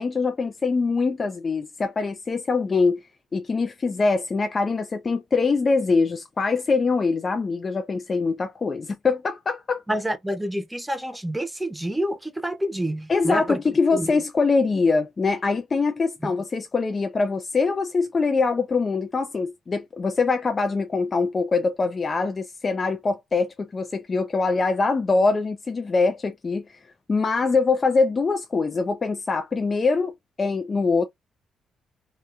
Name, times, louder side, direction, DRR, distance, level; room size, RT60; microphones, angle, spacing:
voice 1, 0.0-3.0 3.3-9.8 13.1-26.6 27.1-31.1, left 4 dB, 35° left, 0.4 m, -23 dB
voice 2, 9.9-13.6 13.9-14.1 16.2-16.3, right 1 dB, 5° right, 0.7 m, -28 dB
2.9 x 2.2 x 2.4 m
cardioid pair, 90°, 0 cm